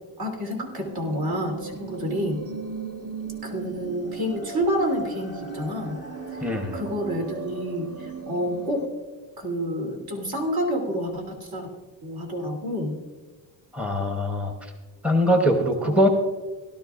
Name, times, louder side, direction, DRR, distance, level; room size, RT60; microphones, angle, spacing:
voice 1, 0.2-2.4 3.4-6.0 6.4-8.9 9.4-11.7 12.0-13.0 15.8-16.1, equal, 55° right, 0 dB, 3.2 m, -29 dB
sound 1, 0.9-8.9, right 4 dB, 30° right, 1.4 m, -37 dB
voice 2, 6.4-6.8 13.7-14.7 15.0-16.1, equal, 5° right, 4 dB, 1.0 m, -22 dB
17.0 x 12.5 x 2.5 m, 1.3 s
cardioid pair, 120°, 45 cm